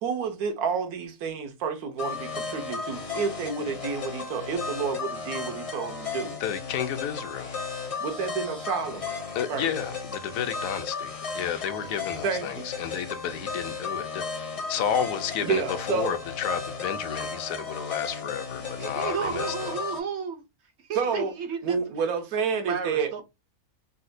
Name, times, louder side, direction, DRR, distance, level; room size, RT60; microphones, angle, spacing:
voice 1, 0.0-6.4 8.0-9.2 9.5-9.7 12.2-12.6 15.4-16.2 20.9-21.3 21.6-23.2, right 6 dB, 90° right, 1.3 m, -29 dB
sound 1, 2.0-20.0, left 5 dB, 40° left, 0.5 m, -35 dB
voice 2, 6.4-7.6 9.3-15.6 15.9-19.8, left 8 dB, 75° left, 0.9 m, -31 dB
voice 3, 18.6-20.4 20.9-21.8 22.6-23.2, right 6 dB, 65° right, 0.7 m, -32 dB
4.1 x 2.1 x 2.5 m
omnidirectional pair, 1.5 m